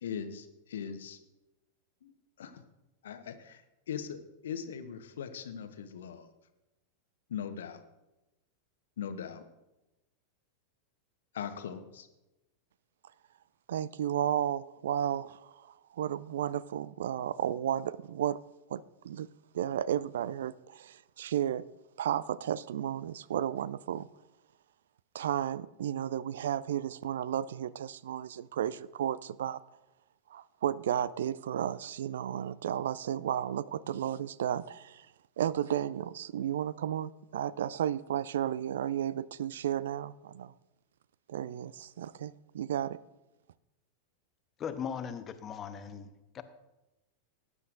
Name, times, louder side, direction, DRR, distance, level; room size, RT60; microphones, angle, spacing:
voice 1, 0.0-1.2 2.0-2.6 3.0-4.2 4.4-6.3 7.3-7.8 9.0-9.4 11.3-12.1, left 8 dB, 60° left, 1.0 m, -40 dB
voice 2, 13.7-18.4 18.7-19.3 19.5-21.7 22.0-24.1 25.1-29.6 30.3-35.1 35.4-40.5 41.3-43.0, right 10 dB, 60° right, 0.3 m, -33 dB
voice 3, 44.6-46.1 46.3-46.4, left 7 dB, 25° left, 0.9 m, -38 dB
19.0 x 9.6 x 2.5 m
figure-of-eight pair, 90°, 0 cm